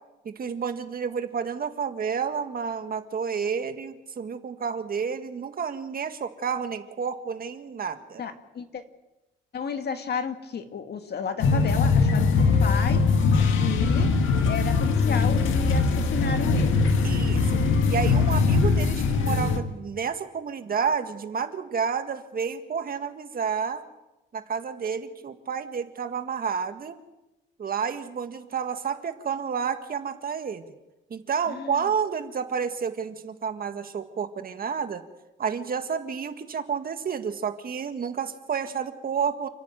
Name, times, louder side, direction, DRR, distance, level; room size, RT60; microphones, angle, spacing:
voice 1, 0.3-8.2 17.0-17.6 17.9-23.8 24.3-27.0 27.6-30.6 31.1-35.0 35.4-39.5, right 6 dB, 45° right, 8 dB, 1.8 m, -30 dB
voice 2, 8.2-8.8 9.5-13.0 13.5-14.1 14.4-16.8 31.5-31.8, left 6 dB, 55° left, 7 dB, 2.2 m, -32 dB
sound 1, 11.4-19.6, left 4 dB, 80° left, 2.0 m, -21 dB
29.5 x 10.5 x 9.1 m, 1.0 s
cardioid pair, 90°, 20 cm